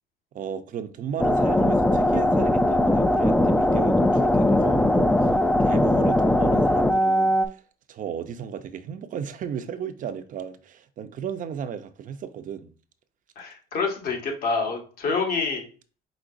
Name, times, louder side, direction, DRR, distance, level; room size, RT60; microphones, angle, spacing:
voice 1, 0.3-5.3 5.6-7.6 7.9-12.7, right 8 dB, 50° right, 0.6 m, -35 dB
sound 1, 1.2-7.5, left 1 dB, 5° left, 0.4 m, -20 dB
voice 2, 13.3-15.7, left 4 dB, 60° left, 1.5 m, -27 dB
5.0 x 3.8 x 2.6 m
cardioid pair, 110°, 17 cm